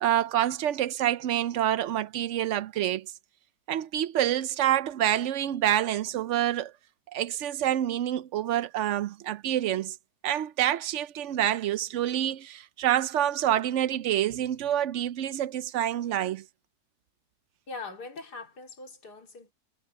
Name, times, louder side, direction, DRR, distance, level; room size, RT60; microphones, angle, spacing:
voice 1, 0.0-3.1 3.7-6.7 7.1-10.0 10.2-16.4, right 11 dB, 65° right, 0.7 m, -27 dB
voice 2, 17.7-19.5, left 3 dB, 90° left, 3.5 m, -41 dB
omnidirectional pair, 1.7 m